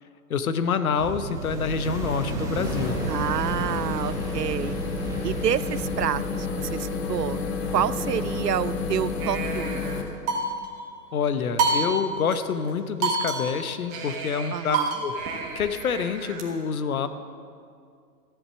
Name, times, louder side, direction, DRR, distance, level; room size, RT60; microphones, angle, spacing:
voice 1, 0.3-3.0 11.1-15.1 15.5-17.1, left 6 dB, 60° left, 11 dB, 0.9 m, -27 dB
sound 1, 1.0-6.1, right 3 dB, 5° right, 0.7 m, -33 dB
sound 2, 2.6-10.0, left 4 dB, 40° left, 1.4 m, -30 dB
voice 2, 3.1-4.8 5.2-7.4 7.7-9.9 14.5-15.0, right 9 dB, 75° right, 17 dB, 0.6 m, -28 dB
sound 3, 9.2-10.8 11.6-12.4 12.7-12.8 13.0-16.4, right 3 dB, 25° right, 1.6 m, -29 dB
13.5 x 8.1 x 7.1 m, 2.2 s
figure-of-eight pair, 120°, 49 cm